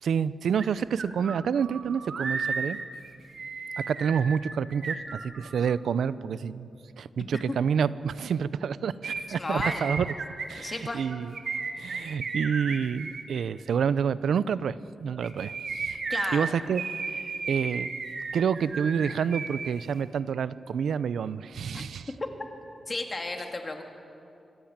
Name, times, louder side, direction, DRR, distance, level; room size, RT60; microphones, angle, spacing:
voice 1, 0.0-2.8 3.8-6.7 7.0-10.1 10.5-11.3 11.8-16.0 16.3-16.8 17.1-17.9 18.3-22.1, right 7 dB, 80° right, 16 dB, 0.6 m, -28 dB
sound 1, 0.6-0.7 1.0-5.7 9.0-13.2 15.1-19.7 20.0-20.1, right 4 dB, 50° right, 1.8 m, -34 dB
voice 2, 9.4-9.9 10.6-11.0 16.1-16.4 21.7-21.9 22.9-23.8, left 2 dB, 25° left, 4 dB, 1.9 m, -33 dB
25.5 x 15.0 x 8.8 m, 2.6 s
wide cardioid pair, 175°, 0 cm